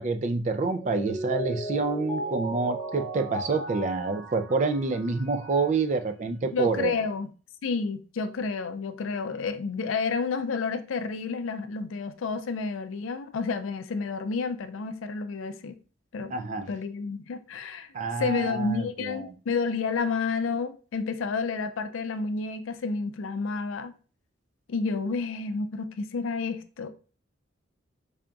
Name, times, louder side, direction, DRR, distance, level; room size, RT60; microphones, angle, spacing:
voice 1, 0.0-7.0 16.3-16.7 17.9-19.3, right 3 dB, 35° right, 0.3 m, -28 dB
Mallet percussion, 0.8-5.8, right 2 dB, 10° left, 0.9 m, -36 dB
voice 2, 6.5-7.3 7.6-15.8 16.1-16.4 16.7-17.9 18.2-23.9 24.7-26.9, left 4 dB, 85° left, 0.4 m, -30 dB
3.4 x 2.3 x 3.8 m
head